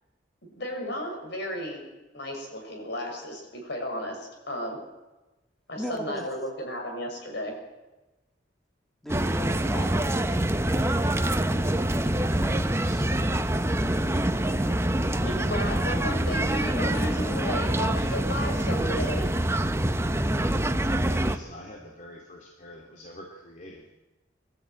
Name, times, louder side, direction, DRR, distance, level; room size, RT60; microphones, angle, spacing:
voice 1, 0.4-1.9 2.1-4.8 5.7-7.6 15.2-19.3, left 1 dB, 65° left, 2 dB, 6.3 m, -34 dB
voice 2, 5.7-6.3 9.0-9.9 10.7-11.2 12.3-13.1 14.4-14.9, equal, ahead, 3 dB, 1.7 m, -37 dB
sound 1, 9.1-21.4, right 1 dB, 15° right, 0.9 m, -25 dB
voice 3, 20.9-23.9, left 1 dB, 40° left, 0 dB, 2.5 m, -45 dB
24.0 x 13.0 x 9.2 m, 1.1 s
head